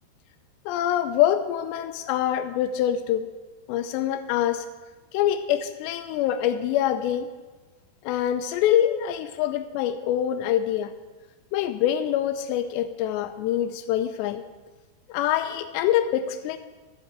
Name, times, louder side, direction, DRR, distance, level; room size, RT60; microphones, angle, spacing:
voice 1, 0.7-3.3 3.7-4.7 5.1-7.3 8.0-10.9 11.5-14.4 15.1-16.6, left 11 dB, 85° left, 10 dB, 2.7 m, -25 dB
12.5 x 5.7 x 7.9 m, 1.3 s
omnidirectional pair, 5.0 m